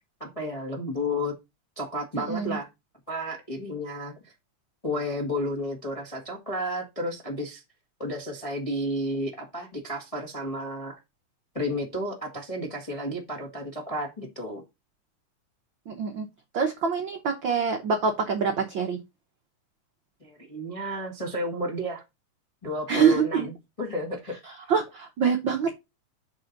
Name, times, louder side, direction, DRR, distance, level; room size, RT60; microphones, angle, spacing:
voice 1, 0.2-1.3 1.8-2.7 3.1-4.3 4.8-7.6 8.0-10.9 11.5-14.6 20.2-22.0 22.6-24.4, equal, 45° left, 0.4 m, -32 dB
voice 2, 2.1-2.6 15.9-16.3 16.5-19.0 22.9-23.5 24.7-25.7, right 6 dB, 85° right, 1.0 m, -25 dB
6.1 x 3.9 x 5.7 m
omnidirectional pair, 3.5 m